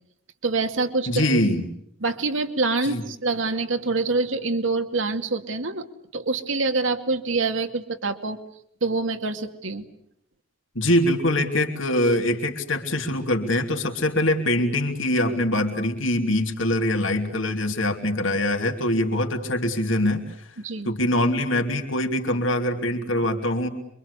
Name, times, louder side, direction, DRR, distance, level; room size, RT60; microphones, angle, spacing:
voice 1, 0.4-1.4 2.0-5.9 6.1-8.4 8.8-9.8 20.6-20.9, right 3 dB, 85° right, 6 dB, 2.5 m, -25 dB
voice 2, 1.1-1.7 2.8-3.0 10.7-20.3 20.8-23.7, left 1 dB, 85° left, 4 dB, 3.0 m, -23 dB
27.0 x 24.5 x 8.3 m, 0.72 s
head